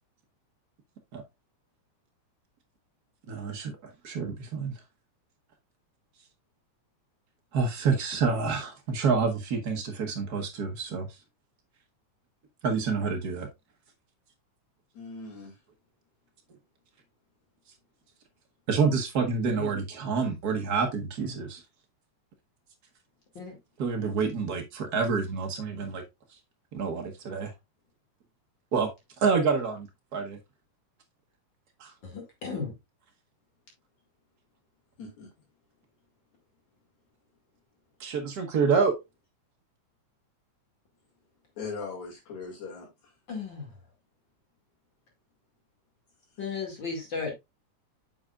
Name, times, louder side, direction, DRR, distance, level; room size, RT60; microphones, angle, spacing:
voice 1, 3.3-3.8 4.0-4.7 7.5-11.1 12.6-13.5 18.7-21.6 23.8-26.0 26.7-27.5 28.7-28.9 29.2-30.4 31.8-31.9 38.0-39.0, right 5 dB, 80° right, 0.8 m, -28 dB
voice 2, 14.9-15.5 35.0-35.3 41.6-42.9, left 4 dB, 75° left, 3.5 m, -39 dB
voice 3, 32.0-32.7 43.3-43.7 46.4-47.3, left 4 dB, 40° left, 2.6 m, -35 dB
8.9 x 6.2 x 2.4 m
omnidirectional pair, 3.3 m